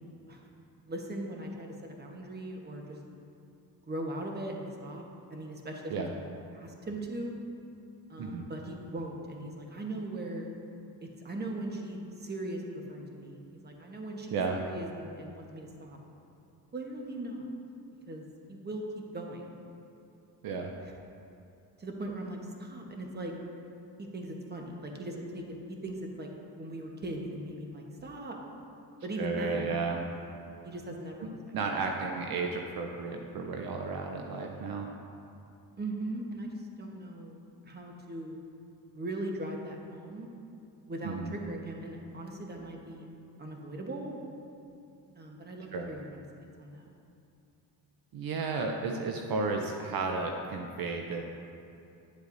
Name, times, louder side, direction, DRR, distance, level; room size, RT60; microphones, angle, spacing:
voice 1, 0.9-3.0 3.9-5.0 5.3-6.2 6.5-7.4 8.1-10.5 11.0-16.0 16.7-17.5 18.1-19.5 21.8-23.3 24.1-26.3 26.6-28.4 29.0-29.8 30.6-31.3 31.7-31.8 35.8-37.4 37.6-38.4 38.9-40.3 40.9-43.1 43.4-44.1 45.1-46.2 46.6-46.8, right 1 dB, 25° right, 1 dB, 1.1 m, -39 dB
voice 2, 29.2-30.0 31.2-34.9 41.0-41.3 45.7-45.9 48.1-51.2, right 4 dB, 60° right, 2 dB, 0.7 m, -33 dB
10.0 x 8.0 x 2.6 m, 2.7 s
cardioid pair, 95°, 41 cm